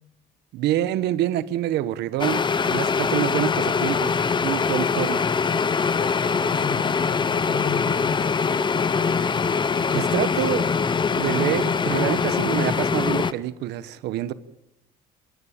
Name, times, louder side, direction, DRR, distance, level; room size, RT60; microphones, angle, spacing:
voice 1, 0.5-4.1 4.4-5.3 9.9-10.7 11.1-14.3, right 13 dB, 85° right, 1.3 m, -26 dB
sound 1, 2.2-13.3, left 5 dB, 25° left, 1.0 m, -23 dB
voice 2, 5.7-8.3, left 6 dB, 75° left, 5.4 m, -35 dB
27.0 x 14.5 x 8.9 m
cardioid pair, 110°, 17 cm